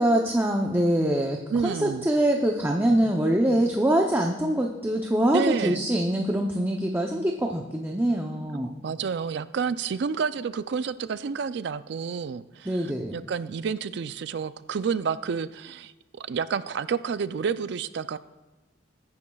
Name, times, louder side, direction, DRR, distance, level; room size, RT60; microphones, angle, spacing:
voice 1, 0.0-8.7 12.7-13.2, right 1 dB, 10° right, 2 dB, 0.6 m, -24 dB
voice 2, 1.5-2.1 5.3-5.8 8.5-18.2, right 6 dB, 60° right, 15 dB, 0.4 m, -30 dB
20.0 x 9.6 x 2.3 m, 1.1 s
head